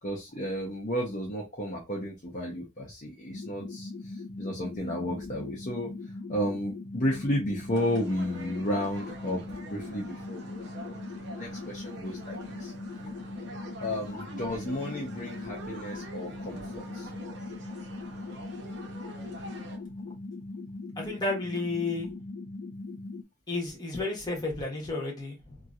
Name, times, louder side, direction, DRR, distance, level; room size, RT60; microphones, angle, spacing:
voice 1, 0.0-5.9 6.3-12.7 13.8-17.1, equal, 40° left, 0.8 m, -33 dB
sound 1, 3.3-23.2, left 2 dB, 80° left, 0.5 m, -40 dB
sound 2, 7.7-19.8, right 2 dB, 65° right, 0.8 m, -45 dB
voice 2, 21.0-22.1 23.5-25.6, left 2 dB, 20° left, 1.3 m, -32 dB
2.9 x 2.8 x 2.5 m
head